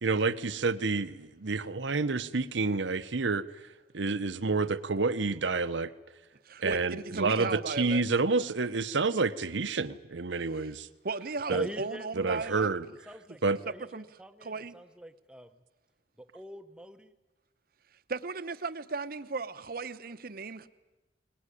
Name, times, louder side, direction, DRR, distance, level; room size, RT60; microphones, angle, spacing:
voice 1, 0.0-3.7 3.9-5.9 6.6-10.9 11.5-11.7 12.2-12.9 13.4-13.6, right 4 dB, 80° right, 0.9 m, -29 dB
voice 2, 6.5-8.0 11.0-12.7 13.9-14.0 14.4-14.7 18.1-20.7, right 3 dB, 50° right, 0.8 m, -36 dB
voice 3, 11.5-12.7 13.1-15.6 16.2-17.1, equal, 5° right, 0.8 m, -44 dB
21.5 x 20.0 x 9.9 m
head